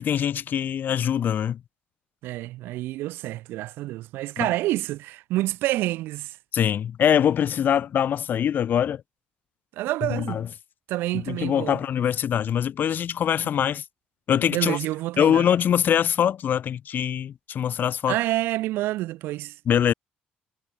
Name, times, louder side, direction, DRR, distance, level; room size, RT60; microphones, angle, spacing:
voice 1, 0.0-1.6 4.4-4.5 6.5-9.0 10.0-10.5 11.1-13.8 14.3-14.8 15.2-18.2 19.7-19.9, left 9 dB, 60° left, 1.4 m, -23 dB
voice 2, 2.2-6.4 9.8-10.5 10.9-11.8 14.5-15.4 18.1-19.6, right 17 dB, 75° right, 1.0 m, -28 dB
supercardioid pair, 60°, 4 cm